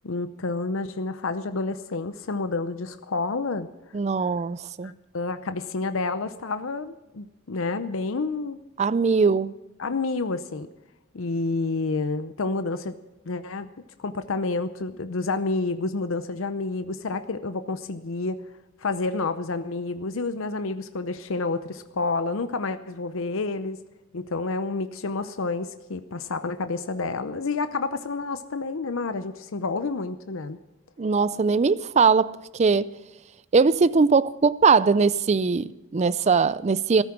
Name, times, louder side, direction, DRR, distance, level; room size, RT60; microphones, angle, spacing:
voice 1, 0.0-3.7 4.8-8.6 9.8-10.7 11.1-12.9 13.2-13.7 14.0-18.4 18.8-23.8 24.1-30.6, left 3 dB, 65° left, 0.7 m, -29 dB
voice 2, 3.9-4.9 8.8-9.5 31.0-32.9 33.5-37.0, right 5 dB, 30° right, 0.4 m, -21 dB
14.5 x 13.0 x 5.9 m
head